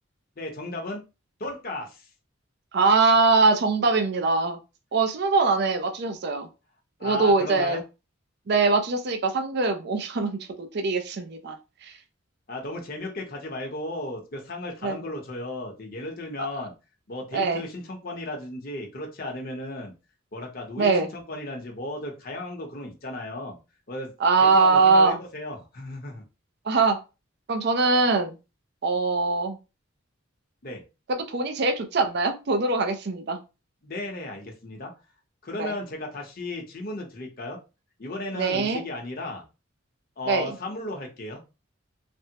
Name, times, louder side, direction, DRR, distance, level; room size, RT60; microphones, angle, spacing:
voice 1, 0.4-1.0 1.4-2.1 7.0-7.8 12.5-16.7 17.1-19.9 20.3-23.6 23.9-26.2 30.6-30.8 33.8-34.9 35.4-37.6 38.0-39.4 40.2-41.4, left 2 dB, 45° left, 1 dB, 0.7 m, -35 dB
voice 2, 2.7-4.6 4.9-6.5 7.0-7.8 8.5-11.6 11.8-11.9 14.8-15.0 17.3-17.7 20.8-21.1 24.2-25.2 26.7-27.0 27.5-28.4 28.8-29.6 31.1-33.4 35.6-35.7 38.4-38.8 40.3-40.6, right 3 dB, 55° right, 6 dB, 0.5 m, -22 dB
3.3 x 2.0 x 2.8 m, 0.29 s
head